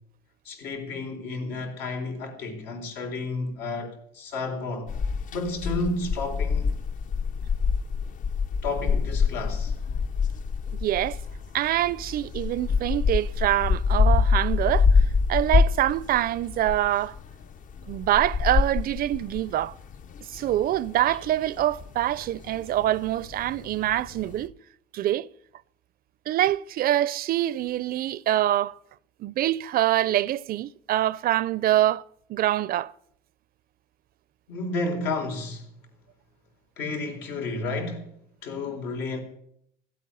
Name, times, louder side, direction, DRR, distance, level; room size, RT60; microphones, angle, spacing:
voice 1, 0.4-4.9 5.3-6.7 8.6-9.7 34.5-35.7 36.8-38.0 38.4-39.2, left 3 dB, 85° left, 4.3 m, -31 dB
sound 1, 4.9-24.5, left 5 dB, 50° left, 0.9 m, -26 dB
voice 2, 10.8-11.2 11.5-15.0 15.3-17.1 17.9-19.7 20.3-24.5 24.9-25.3 26.3-28.8 29.2-32.0 32.3-32.9, right 13 dB, 60° right, 0.5 m, -25 dB
15.5 x 8.6 x 9.7 m
cardioid pair, 110°, 17 cm